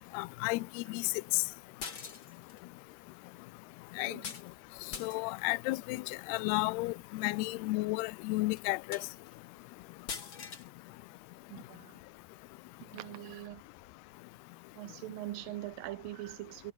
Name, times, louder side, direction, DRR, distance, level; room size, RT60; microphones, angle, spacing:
voice 1, 0.1-1.4 4.0-4.2 5.0-9.0, left 22 dB, 80° left, 2.5 m, -32 dB
sound 1, 1.8-2.6 4.2-4.5 4.9-5.4 6.2-6.5 7.3-7.4 7.8-7.9 8.6-8.7 8.9-9.4 10.1-10.7, left 6 dB, 35° left, 2.7 m, -42 dB
voice 2, 4.0-4.3 11.5-12.0 12.8-13.6 14.8-16.7, right 16 dB, 70° right, 2.3 m, -43 dB
omnidirectional pair, 5.1 m